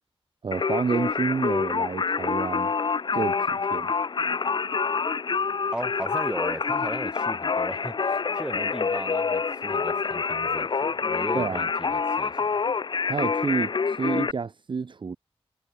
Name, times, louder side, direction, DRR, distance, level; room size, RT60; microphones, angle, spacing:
voice 1, 0.4-2.7 3.1-3.9 11.3-11.6 13.1-15.2, right 5 dB, 50° right, 0.6 m, -29 dB
Singing, 0.5-14.3, left 5 dB, 50° left, 0.6 m, -27 dB
voice 2, 5.7-12.6, right 1 dB, 10° right, 1.8 m, -36 dB
wide cardioid pair, 100°, 10 cm